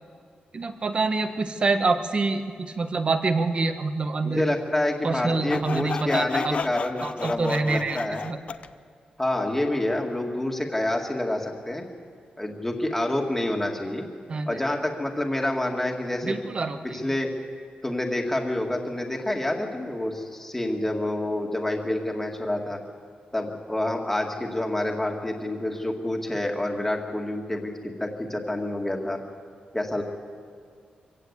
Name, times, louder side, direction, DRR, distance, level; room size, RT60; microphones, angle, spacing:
voice 1, 0.5-4.4 5.0-6.6 7.0-8.4 14.3-14.6 16.2-17.0, right 3 dB, 40° right, 8 dB, 1.2 m, -26 dB
voice 2, 4.2-8.2 9.2-11.9 12.4-14.1 14.5-16.4 16.9-17.3 17.8-22.8 23.3-27.7 28.0-29.2 29.7-30.0, left 1 dB, 10° left, 1 dB, 2.1 m, -28 dB
Sawing, 5.5-8.7, left 5 dB, 45° left, 0.6 m, -32 dB
24.5 x 16.0 x 8.3 m, 2.2 s
wide cardioid pair, 150°, 3 cm